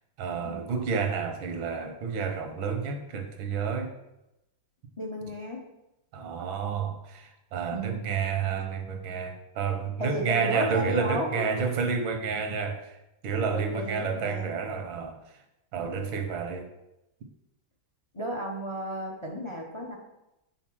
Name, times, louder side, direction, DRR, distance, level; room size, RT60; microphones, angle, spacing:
voice 1, 0.2-4.0 6.1-13.0 13.2-15.2 15.7-16.7, right 6 dB, 85° right, 6 dB, 1.8 m, -30 dB
voice 2, 5.0-5.6 7.7-8.0 10.0-11.7 13.5-14.5 15.8-16.0 18.1-20.0, equal, 35° left, 1 dB, 0.5 m, -33 dB
8.5 x 3.9 x 6.1 m, 0.90 s
omnidirectional pair, 2.1 m